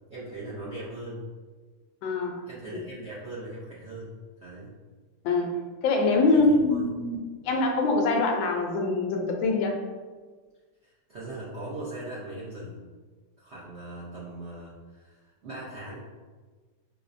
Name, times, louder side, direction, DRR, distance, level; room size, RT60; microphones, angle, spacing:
voice 1, 0.1-1.3 2.4-4.7 6.3-6.9 10.8-12.8 13.4-16.0, right 1 dB, 75° right, -8 dB, 0.6 m, -40 dB
voice 2, 2.0-2.4 2.7-2.8 5.2-7.2 7.4-9.7, left 3 dB, 85° left, 2 dB, 1.3 m, -24 dB
5.6 x 2.1 x 2.5 m, 1.4 s
omnidirectional pair, 2.1 m